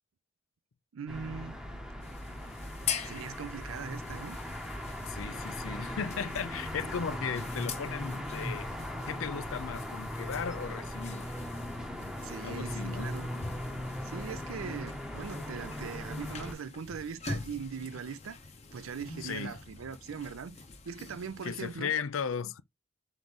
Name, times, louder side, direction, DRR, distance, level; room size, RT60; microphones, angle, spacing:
voice 1, 0.9-1.6 3.0-4.4 12.2-13.3 14.0-18.4 18.7-20.6 20.9-21.9, right 6 dB, 85° right, 0.5 m, -40 dB
sound 1, 1.1-16.5, left 1 dB, 5° right, 0.8 m, -39 dB
sound 2, 2.0-21.8, left 5 dB, 30° left, 0.7 m, -44 dB
voice 2, 5.1-8.7 9.1-11.2 11.7-12.1 12.4-13.1 19.2-19.6 21.4-22.6, left 7 dB, 80° left, 0.5 m, -36 dB
3.8 x 3.0 x 3.6 m
head